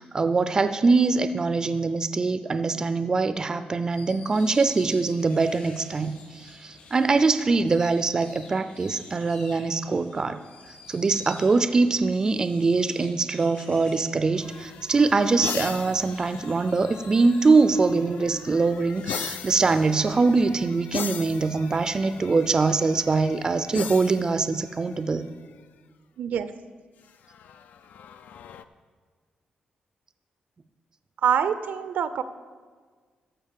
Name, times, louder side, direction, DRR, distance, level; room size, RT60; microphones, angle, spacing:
voice 1, 0.0-10.4 10.9-25.2, right 4 dB, 25° right, 11 dB, 0.4 m, -23 dB
sound 1, 3.9-20.6, left 3 dB, 60° left, 3.3 m, -50 dB
sound 2, 14.3-25.5 27.1-28.6, left 8 dB, 80° left, 0.5 m, -39 dB
voice 2, 26.2-26.5 31.2-32.2, right 8 dB, 80° right, 12 dB, 0.6 m, -25 dB
13.5 x 5.3 x 7.4 m, 1.5 s
wide cardioid pair, 155°, 3 cm